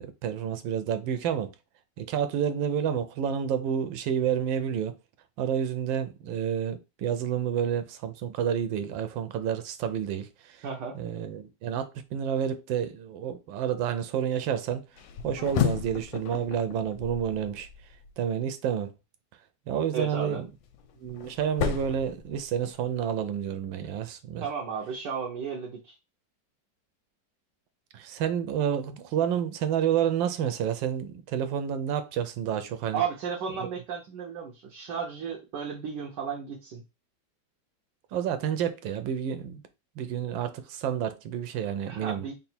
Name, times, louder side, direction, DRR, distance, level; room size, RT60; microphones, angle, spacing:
voice 1, 0.0-1.5 2.0-5.0 5.4-10.6 10.9-14.8 15.2-17.7 18.2-18.9 19.7-20.5 21.0-24.4 27.9-33.0 33.6-33.7 38.1-39.6 40.0-42.3, right 8 dB, 90° right, 1.3 m, -29 dB
voice 2, 10.6-11.0 19.9-20.4 24.4-25.9 32.9-36.8 41.9-42.3, right 6 dB, 70° right, 1.4 m, -34 dB
sound 1, 15.0-18.1 20.3-22.9, left 9 dB, 90° left, 1.3 m, -33 dB
3.9 x 2.1 x 4.2 m
omnidirectional pair, 2.0 m